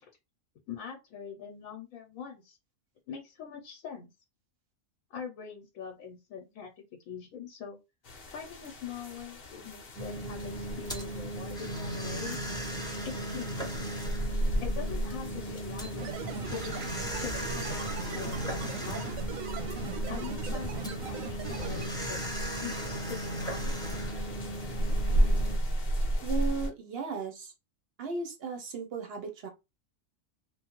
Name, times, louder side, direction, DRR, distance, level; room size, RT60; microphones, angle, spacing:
voice 1, 0.7-2.6 3.1-4.1 5.1-6.7 7.1-7.8 8.3-12.4 13.0-13.5 14.6-19.2 20.1-23.9, left 7 dB, 80° left, 1 dB, 1.0 m, -43 dB
sound 1, 8.0-26.7, right 1 dB, 50° left, 0.9 m, -35 dB
sound 2, 10.0-25.6, right 1 dB, 5° left, 0.5 m, -37 dB
sound 3, 16.0-21.9, right 5 dB, 90° right, 1.0 m, -40 dB
voice 2, 26.2-27.5 28.0-29.5, right 4 dB, 60° right, 5 dB, 0.7 m, -36 dB
3.0 x 2.0 x 2.9 m, 0.25 s
omnidirectional pair, 1.4 m